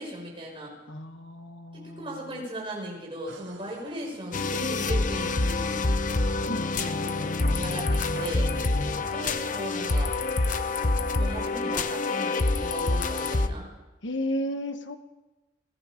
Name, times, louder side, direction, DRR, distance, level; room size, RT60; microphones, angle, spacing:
voice 1, 0.0-0.7 1.7-5.8 7.6-7.9 8.2-8.5 8.9-10.1 11.1-13.7, right 1 dB, 25° right, -2 dB, 5.8 m, -37 dB
voice 2, 0.9-2.2 6.4-9.0 14.0-15.0, left 1 dB, 60° left, 7 dB, 1.3 m, -34 dB
sound 1, 3.3-11.2, right 1 dB, 65° right, 2.1 m, -47 dB
sound 2, 4.3-13.5, left 2 dB, 40° left, 0.8 m, -27 dB
28.5 x 18.5 x 5.1 m, 1.1 s
head